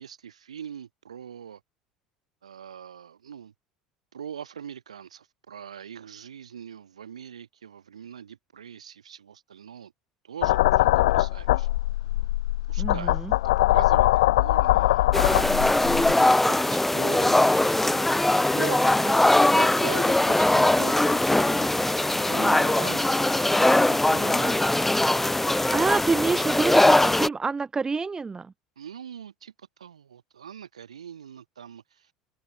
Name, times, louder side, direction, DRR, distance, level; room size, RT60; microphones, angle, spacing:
voice 1, 0.0-1.6 2.4-3.5 4.1-9.9 10.2-11.7 12.7-13.2 13.4-15.8 16.5-18.8 19.5-23.3 23.6-24.7 28.8-32.1, right 8 dB, 75° right, 4.8 m, -42 dB
sound 1, 10.4-16.1, left 16 dB, 65° left, 1.7 m, -22 dB
voice 2, 12.8-13.3 19.0-19.2 25.6-28.5, right 4 dB, 20° right, 3.8 m, -27 dB
sound 2, 15.1-27.3, left 1 dB, 5° left, 0.4 m, -21 dB
open air
figure-of-eight pair, 70°, 3 cm